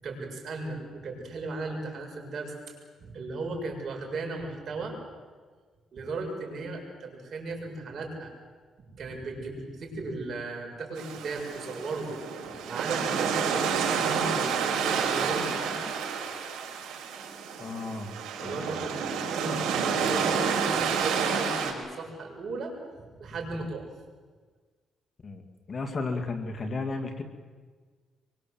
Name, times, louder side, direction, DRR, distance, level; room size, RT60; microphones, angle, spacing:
voice 1, 0.0-5.0 5.9-8.3 8.9-12.1 12.7-15.8 18.4-23.9, right 3 dB, 55° right, 1 dB, 7.2 m, -36 dB
sound 1, 11.0-21.7, right 6 dB, 85° right, 5.5 m, -29 dB
voice 2, 17.6-18.1 18.4-18.9 25.2-27.2, left 3 dB, 40° left, 7 dB, 2.7 m, -34 dB
25.5 x 24.0 x 7.9 m, 1.5 s
cardioid pair, 90°, 0 cm